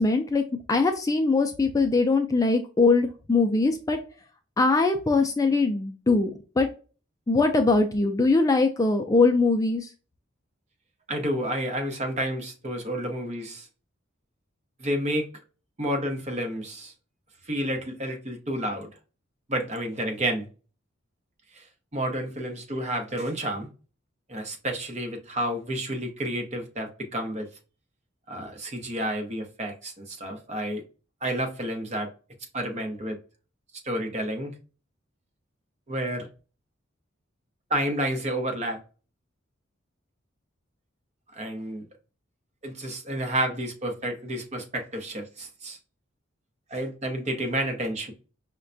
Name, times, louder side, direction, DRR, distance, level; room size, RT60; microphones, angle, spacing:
voice 1, 0.0-4.0 4.6-6.3 6.6-6.7 7.3-9.9, left 3 dB, 15° left, 0.3 m, -22 dB
voice 2, 11.1-13.7 14.8-15.3 15.8-16.9 17.5-18.9 19.5-20.5 21.5-21.6 21.9-23.7 24.3-27.5 28.3-30.8 31.2-32.1 32.5-33.2 33.8-34.5 35.9-36.3 37.7-38.8 41.3-41.8 42.6-45.8 46.7-48.1, right 1 dB, 35° right, 0.9 m, -30 dB
5.5 x 2.2 x 2.5 m
head